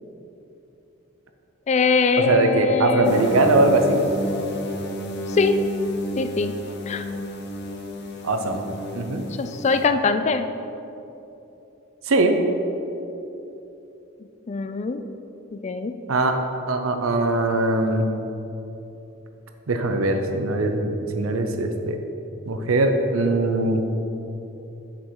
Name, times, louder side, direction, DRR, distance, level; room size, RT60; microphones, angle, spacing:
voice 1, 1.7-3.1 5.3-5.7 6.2-7.0 9.4-10.5 14.5-15.0 15.5-16.0, left 4 dB, 35° left, 9 dB, 0.3 m, -22 dB
voice 2, 2.3-4.0 8.2-8.6 8.9-9.2 12.1-12.4 16.1-16.4 16.7-18.1 19.7-22.0 22.5-23.8, right 2 dB, 85° right, 6 dB, 0.7 m, -21 dB
sound 1, 3.0-9.9, equal, 55° left, 0.8 m, -31 dB
7.1 x 5.3 x 4.7 m, 3.0 s
head